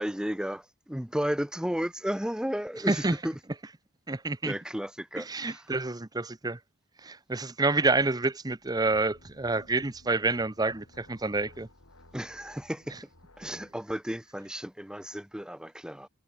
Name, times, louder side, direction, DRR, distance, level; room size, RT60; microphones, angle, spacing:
voice 1, 0.0-3.3 4.4-5.6 12.1-12.9 13.4-16.1, equal, 5° right, 1.3 m, -33 dB
voice 2, 4.1-4.5 5.2-6.6 7.0-11.7, right 3 dB, 20° right, 0.8 m, -28 dB
sound 1, 8.6-13.8, left 1 dB, 85° left, 6.9 m, -56 dB
head